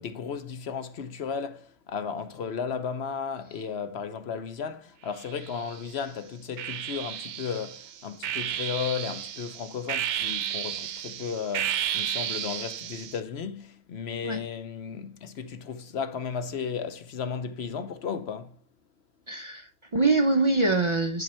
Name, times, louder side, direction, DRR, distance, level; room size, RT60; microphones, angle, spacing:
voice 1, 0.0-18.6, left 6 dB, 70° left, 1.1 m, -34 dB
sound 1, 5.2-5.9 6.6-13.2, right 10 dB, 85° right, 0.9 m, -33 dB
voice 2, 19.3-21.2, right 3 dB, 30° right, 0.6 m, -24 dB
11.0 x 3.9 x 4.3 m
omnidirectional pair, 1.1 m